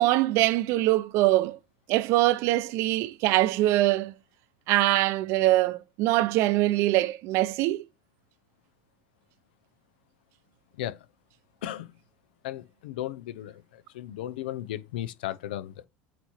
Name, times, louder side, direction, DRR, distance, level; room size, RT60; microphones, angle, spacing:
voice 1, 0.0-1.6 1.9-4.1 4.7-7.8, right 16 dB, 60° right, 0.6 m, -23 dB
voice 2, 11.6-12.0 12.4-15.9, left 13 dB, 85° left, 0.6 m, -36 dB
8.1 x 3.1 x 4.3 m
supercardioid pair, 110°, 5 cm